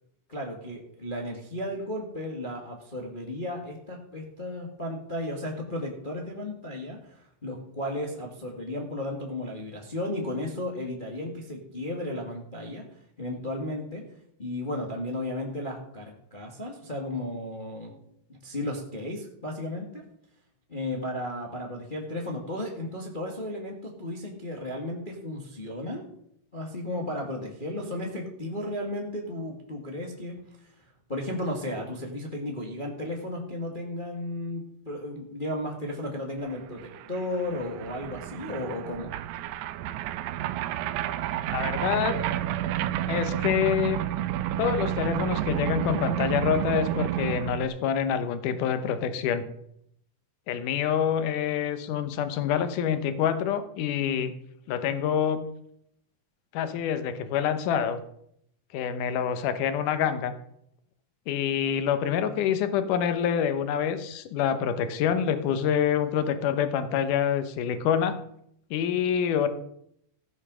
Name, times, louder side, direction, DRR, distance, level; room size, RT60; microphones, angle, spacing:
voice 1, 0.3-12.8 13.2-14.0 14.4-17.9 18.3-20.0 20.7-26.0 26.5-30.7 31.1-39.1, left 1 dB, 25° left, 0 dB, 1.1 m, -34 dB
New Truck Pull Up, 36.5-36.6 36.8-47.7, right 12 dB, 85° right, 1.7 m, -30 dB
voice 2, 41.5-42.2 43.1-44.0 44.6-49.4 50.5-54.3 54.7-55.4 56.5-58.0 58.7-60.3 61.3-68.2 68.7-69.5, left 8 dB, 70° left, 10 dB, 2.4 m, -26 dB
16.0 x 6.6 x 6.2 m, 0.72 s
omnidirectional pair, 4.1 m